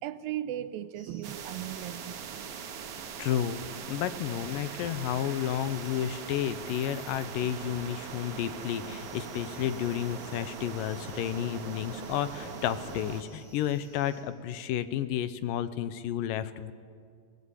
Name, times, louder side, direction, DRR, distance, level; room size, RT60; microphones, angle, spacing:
voice 1, 0.0-2.4, right 12 dB, 85° right, 13 dB, 2.6 m, -37 dB
sound 1, 0.9-14.2, right 1 dB, 10° right, 3.4 m, -55 dB
sound 2, 1.2-13.2, right 6 dB, 65° right, 2.6 m, -41 dB
voice 2, 3.2-16.7, left 10 dB, 80° left, 13 dB, 2.4 m, -31 dB
23.0 x 17.5 x 8.4 m, 2.2 s
omnidirectional pair, 4.0 m